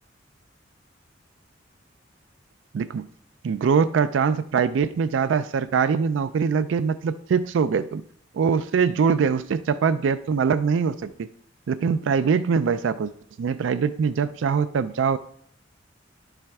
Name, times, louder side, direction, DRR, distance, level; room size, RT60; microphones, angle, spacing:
voice 1, 3.4-8.0 8.3-11.3 11.7-13.1 13.4-15.2, right 6 dB, 85° right, 13 dB, 0.3 m, -23 dB
11.0 x 5.6 x 3.5 m, 0.66 s
head